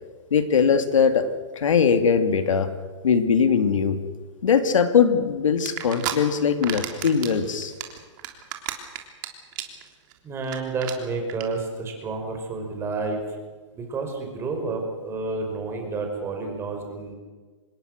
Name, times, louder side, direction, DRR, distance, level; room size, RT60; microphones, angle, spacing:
voice 1, 0.3-1.3 1.6-2.7 3.0-4.0 4.4-7.7, left 6 dB, 80° left, 8 dB, 2.6 m, -20 dB
sound 1, 5.7-6.1 6.5-7.3 7.6-9.3 9.5-9.8 10.1-10.2 10.4-10.6 10.8-10.9 11.3-11.4, right 15 dB, 40° right, 3.3 m, -31 dB
voice 2, 10.2-13.2 13.7-17.2, right 3 dB, 15° right, 3 dB, 5.0 m, -30 dB
26.0 x 21.0 x 6.6 m, 1.4 s
hypercardioid pair, 155°, 16 cm